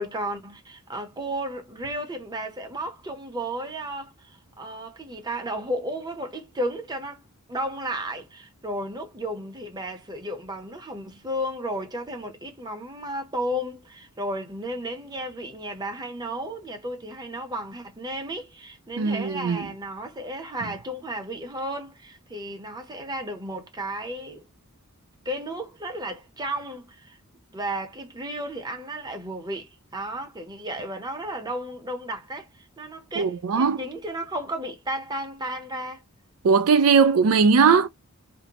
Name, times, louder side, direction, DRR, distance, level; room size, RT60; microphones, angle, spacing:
voice 1, 0.0-7.2 7.5-24.4 25.2-27.2 27.5-36.0, right 1 dB, 20° right, 0.7 m, -33 dB
voice 2, 19.0-19.7 33.2-33.8 36.4-37.9, right 5 dB, 70° right, 0.4 m, -19 dB
2.6 x 2.1 x 2.8 m
head